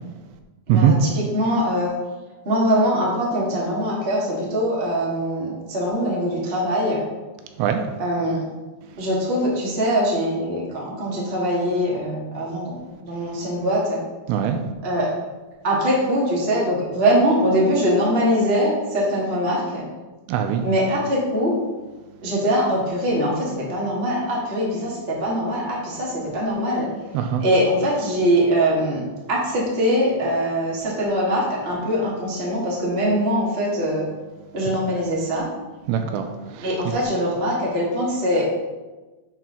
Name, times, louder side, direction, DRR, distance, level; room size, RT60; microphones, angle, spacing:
voice 1, 0.7-1.9 2.4-7.0 8.0-8.4 9.0-14.0 14.8-15.1 15.6-19.8 20.6-21.5 22.2-26.9 27.4-29.0 29.3-34.1 34.5-35.5 36.6-38.5, equal, 40° right, -5 dB, 0.9 m, -22 dB
voice 2, 14.3-14.6 20.3-20.7 27.1-27.4 35.9-36.9, right 8 dB, 85° right, 6 dB, 2.7 m, -21 dB
7.8 x 4.6 x 5.7 m, 1.2 s
omnidirectional pair, 5.0 m